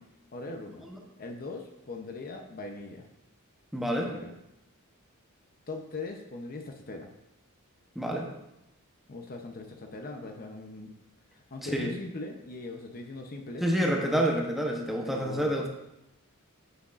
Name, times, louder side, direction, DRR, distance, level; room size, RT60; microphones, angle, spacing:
voice 1, 0.3-0.9 1.2-3.1 4.0-4.3 5.7-7.1 9.1-10.9 11.3-13.7 15.0-15.7, left 2 dB, 40° left, 4 dB, 0.7 m, -40 dB
voice 2, 3.7-4.1 8.0-8.3 11.6-11.9 13.6-15.7, equal, ahead, 0 dB, 0.8 m, -28 dB
9.5 x 6.3 x 2.5 m, 0.88 s
head